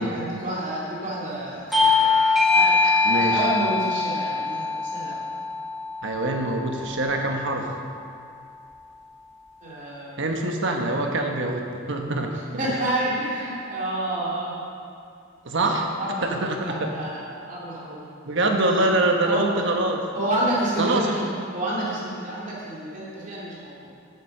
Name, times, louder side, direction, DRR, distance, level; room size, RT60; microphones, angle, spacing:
voice 1, 0.0-5.2 9.6-10.2 12.6-14.5 16.0-18.0 19.2-19.5 20.1-23.9, right 1 dB, 40° right, -6 dB, 2.7 m, -29 dB
Bell / Doorbell, 1.7-6.8, left 4 dB, ahead, 1.5 m, -22 dB
voice 2, 3.1-3.4 6.0-7.7 10.2-12.3 15.4-15.9 16.2-16.9 18.2-20.0 20.8-21.0, right 2 dB, 65° right, 2 dB, 1.2 m, -24 dB
7.9 x 7.6 x 6.6 m, 2.4 s
head